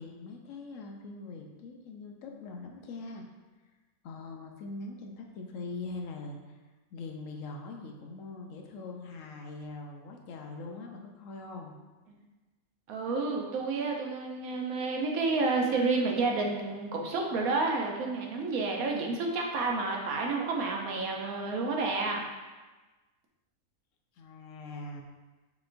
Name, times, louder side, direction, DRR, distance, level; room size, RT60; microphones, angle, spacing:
voice 1, 0.0-3.2 4.0-6.6 6.9-11.8 24.2-25.1, left 3 dB, 70° left, 2 dB, 0.9 m, -42 dB
voice 2, 12.9-22.2, right 3 dB, 90° right, 1 dB, 1.2 m, -30 dB
6.9 x 3.0 x 2.5 m, 1.2 s
omnidirectional pair, 1.5 m